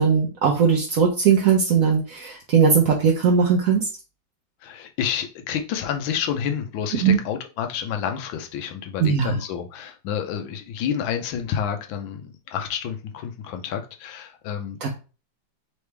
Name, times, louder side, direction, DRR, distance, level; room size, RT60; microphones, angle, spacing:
voice 1, 0.0-3.9 7.0-7.2 9.0-9.3 14.8-14.9, right 6 dB, 65° right, 0.8 m, -19 dB
voice 2, 4.6-14.9, left 8 dB, 90° left, 1.4 m, -29 dB
3.9 x 3.2 x 3.3 m
omnidirectional pair, 2.1 m